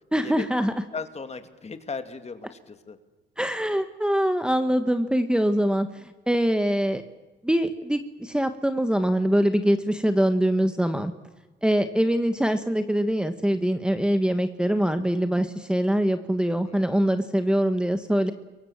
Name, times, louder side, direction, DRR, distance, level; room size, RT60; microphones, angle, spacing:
voice 1, 0.1-0.7 3.4-7.0 7.4-11.1 11.6-18.3, equal, 5° right, 9 dB, 1.4 m, -23 dB
voice 2, 0.9-3.0 16.5-16.8, left 4 dB, 35° left, 8 dB, 2.6 m, -37 dB
28.5 x 23.5 x 7.4 m, 1.2 s
cardioid pair, 90°, 20 cm